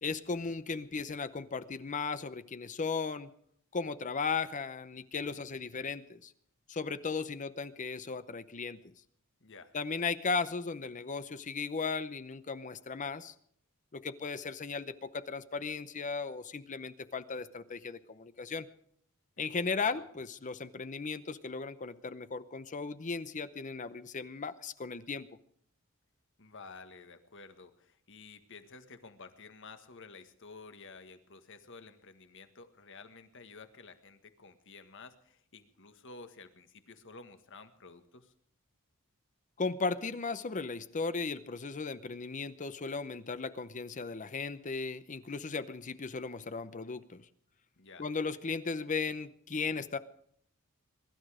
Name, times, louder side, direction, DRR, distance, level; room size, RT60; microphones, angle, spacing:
voice 1, 0.0-3.3 3.7-6.3 6.7-8.8 9.7-13.3 13.9-18.7 19.4-25.3 39.6-47.2 48.0-50.0, left 4 dB, 35° left, 13 dB, 0.7 m, -36 dB
voice 2, 9.4-9.8 19.4-20.0 26.4-38.3 47.8-48.1, left 4 dB, 60° left, 9 dB, 1.6 m, -52 dB
22.5 x 12.5 x 5.0 m, 0.66 s
head